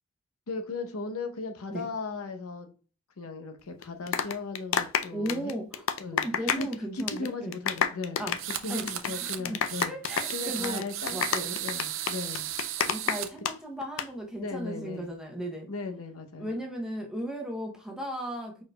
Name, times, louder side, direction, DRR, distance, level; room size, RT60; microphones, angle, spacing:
voice 1, 0.5-2.7 3.2-5.5 6.0-6.2 6.6-6.7 6.9-8.2 8.6-9.9 10.3-11.2 11.6-12.5 14.4-15.1 15.7-16.5, left 3 dB, 80° left, 0.8 m, -37 dB
Unsure Clapping, 3.8-6.7 7.0-7.3 7.5-13.5 13.8-14.1, left 7 dB, 60° left, 0.4 m, -29 dB
voice 2, 5.1-5.8 6.1-7.6 8.2-8.4 8.7-10.9 11.1-11.6 12.8-15.7 16.4-18.6, equal, 5° right, 0.7 m, -36 dB
sound 1, 8.4-9.4 9.6-13.3, right 12 dB, 60° right, 0.5 m, -35 dB
4.6 x 4.5 x 2.2 m
head